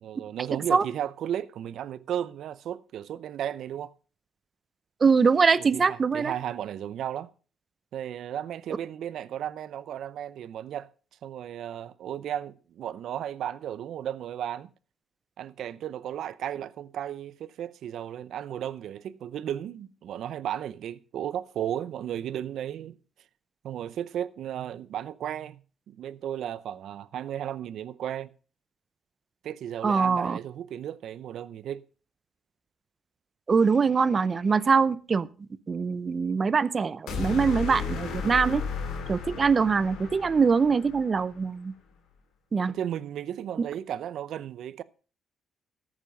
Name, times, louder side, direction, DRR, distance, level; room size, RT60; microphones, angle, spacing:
voice 1, 0.0-3.9 5.6-7.3 7.9-10.9 11.2-14.7 15.4-23.0 23.6-25.6 25.9-28.3 29.4-31.8 42.7-44.8, right 10 dB, 75° right, 0.6 m, -34 dB
voice 2, 5.0-6.3 29.8-30.4 33.5-35.3 35.7-38.6 39.1-41.7 42.5-42.7, right 5 dB, 40° right, 0.7 m, -23 dB
sound 1, 37.1-41.3, left 5 dB, 80° left, 3.7 m, -34 dB
14.0 x 8.9 x 5.2 m
cardioid pair, 90°, 0 cm